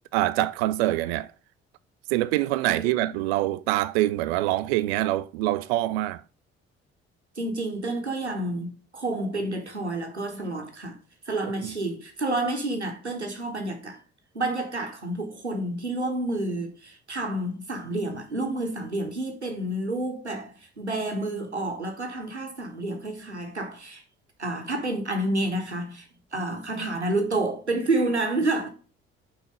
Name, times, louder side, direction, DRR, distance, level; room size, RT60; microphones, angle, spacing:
voice 1, 0.1-1.3 2.1-6.2 11.6-11.7, right 15 dB, 65° right, 0.5 m, -25 dB
voice 2, 2.8-3.1 7.4-11.0 11.3-14.0 14.3-24.0 24.4-26.1 26.3-28.7, right 2 dB, 90° right, 1.0 m, -29 dB
5.6 x 4.3 x 5.2 m
figure-of-eight pair, 45°, 33 cm